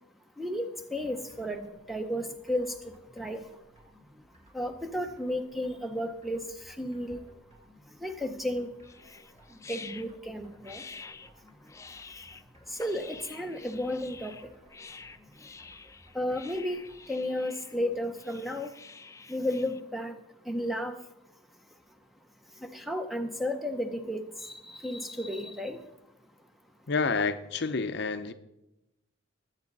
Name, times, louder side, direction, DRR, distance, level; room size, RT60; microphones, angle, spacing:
voice 1, 0.4-3.6 4.5-7.3 7.9-8.8 9.0-10.9 11.9-12.3 12.7-14.5 15.6-15.7 16.1-18.8 19.3-20.2 20.4-21.0 22.5-25.9, left 1 dB, ahead, 0.7 m, -34 dB
sound 1, 0.9-17.0, equal, 30° right, 3.4 m, -59 dB
sound 2, 8.8-19.8, left 4 dB, 15° left, 0.4 m, -48 dB
voice 2, 26.9-28.3, left 4 dB, 55° left, 0.6 m, -29 dB
20.5 x 8.1 x 4.0 m
head